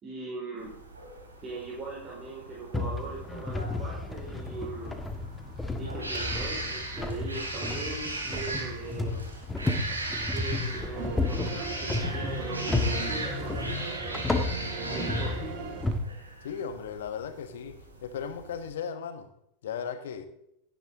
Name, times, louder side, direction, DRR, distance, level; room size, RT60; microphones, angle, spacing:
voice 1, 0.0-0.7 1.4-4.9 5.8-9.2 10.3-14.3 14.9-15.5, right 3 dB, 30° right, -4 dB, 4.9 m, -40 dB
sound 1, 0.6-18.7, right 2 dB, 85° right, 3.0 m, -38 dB
sound 2, 2.7-16.0, left 3 dB, 10° left, 1.7 m, -33 dB
sound 3, 10.9-16.0, right 6 dB, 50° right, 2.1 m, -39 dB
voice 2, 16.4-19.3 19.6-20.3, left 7 dB, 65° left, 9 dB, 1.5 m, -36 dB
17.0 x 10.0 x 3.8 m, 0.78 s
figure-of-eight pair, 85°, 0 cm